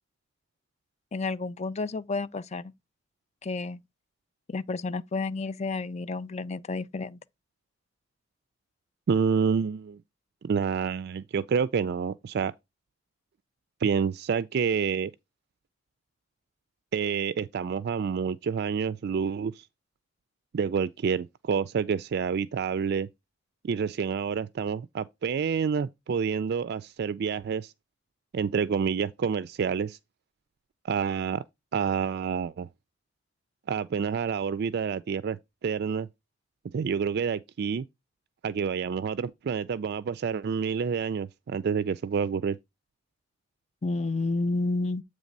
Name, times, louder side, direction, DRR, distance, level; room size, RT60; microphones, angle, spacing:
voice 1, 1.1-2.7 3.4-3.8 4.5-7.2 43.8-45.0, left 3 dB, 35° left, 0.5 m, -30 dB
voice 2, 9.1-10.0 10.4-12.5 13.8-15.1 16.9-19.7 20.5-23.1 23.6-27.7 28.3-30.0 30.8-31.4 31.7-32.7 33.7-36.1 36.7-37.8 38.4-42.6, right 6 dB, 55° right, 0.3 m, -28 dB
8.3 x 3.3 x 5.2 m
head